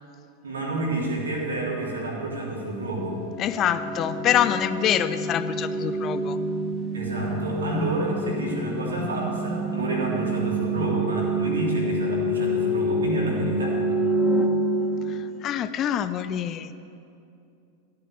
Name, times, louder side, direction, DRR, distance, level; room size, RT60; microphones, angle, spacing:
voice 1, 0.4-3.2 6.9-13.8, right 2 dB, 70° right, -3 dB, 3.4 m, -29 dB
sound 1, 3.0-15.7, right 1 dB, 10° left, 1.3 m, -27 dB
voice 2, 3.4-6.4 15.1-16.7, left 10 dB, 30° left, 13 dB, 0.5 m, -25 dB
14.5 x 8.6 x 8.1 m, 2.6 s
figure-of-eight pair, 90°, 0 cm